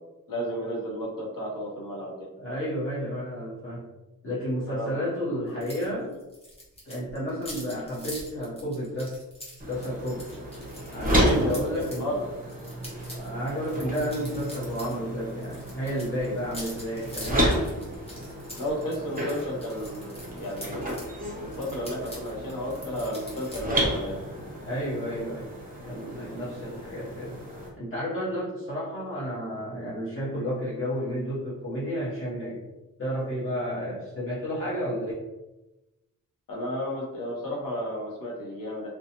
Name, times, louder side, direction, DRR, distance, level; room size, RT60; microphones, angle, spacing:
voice 1, 0.3-2.3 4.7-5.1 5.5-5.6 11.7-12.3 18.6-21.0 21.3-24.2 36.5-38.9, equal, 70° left, -3 dB, 0.9 m, -33 dB
voice 2, 2.4-3.9 4.2-6.1 6.8-9.2 9.7-10.3 10.9-12.1 13.1-17.5 24.6-25.5 25.8-27.4 27.8-32.6 33.0-35.1, equal, 40° left, -10 dB, 1.0 m, -31 dB
sound 1, 5.6-5.9 6.1-12.0 12.5-15.0 15.2-21.1 21.5-23.6, left 1 dB, 15° left, 0.8 m, -44 dB
sound 2, 9.6-27.7, equal, 25° right, 0.6 m, -32 dB
2.7 x 2.3 x 2.8 m, 1.0 s
wide cardioid pair, 155°, 35 cm